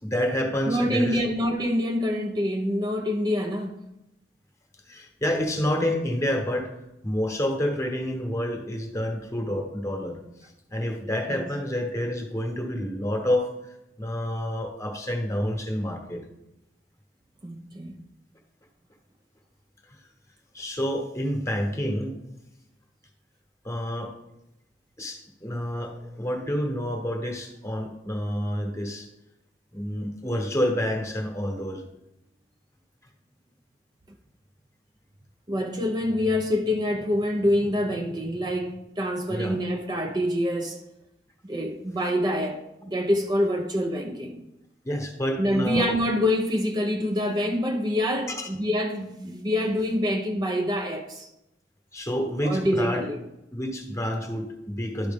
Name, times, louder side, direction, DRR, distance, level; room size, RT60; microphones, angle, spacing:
voice 1, 0.0-1.2 4.9-6.7 7.0-16.2 19.9-20.0 20.5-22.2 23.6-24.1 25.0-29.1 29.7-31.8 39.3-39.5 44.8-46.0 48.3-48.5 51.9-53.1 53.5-55.1, equal, 15° left, 1.1 m, -28 dB
voice 2, 0.7-3.8 11.3-11.4 17.4-18.0 35.5-40.8 41.4-44.4 45.4-51.3 52.4-53.2, left 1 dB, 25° right, 0.5 m, -26 dB
11.5 x 4.9 x 3.6 m
head